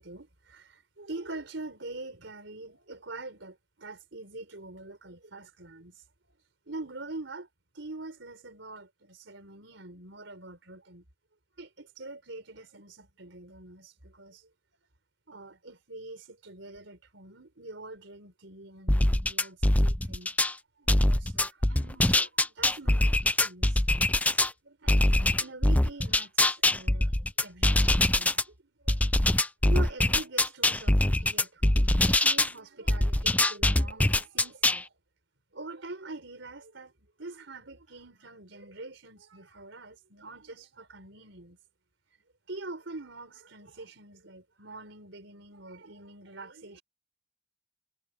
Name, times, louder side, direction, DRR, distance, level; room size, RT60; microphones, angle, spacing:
voice 1, 0.0-6.0 6.7-7.5 7.7-11.0 11.6-14.5 15.3-20.4 20.8-23.8 24.3-28.5 28.8-29.1 29.6-34.9 35.5-36.9 37.2-41.6 42.5-46.8, right 2 dB, 90° right, 4.4 m, -44 dB
sound 1, 18.9-20.5 20.9-24.5 24.9-28.4 28.9-32.5 32.9-34.8, left 1 dB, 10° left, 0.6 m, -23 dB
head